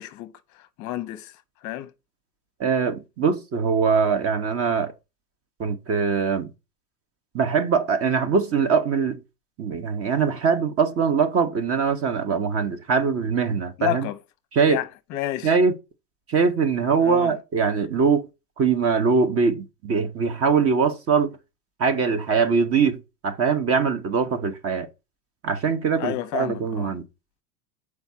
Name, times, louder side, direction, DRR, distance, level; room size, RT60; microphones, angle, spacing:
voice 1, 0.0-1.3 1.6-1.9 13.8-14.2 14.7-15.5 17.0-17.3 26.0-26.9, left 15 dB, 35° left, 0.7 m, -31 dB
voice 2, 2.6-4.9 5.6-6.5 7.3-9.2 9.6-14.1 14.5-14.8 15.4-15.7 16.3-18.3 18.6-21.4 21.8-24.9 25.4-27.0, right 5 dB, 30° right, 0.9 m, -22 dB
6.9 x 4.8 x 4.2 m
hypercardioid pair, 105°, 49 cm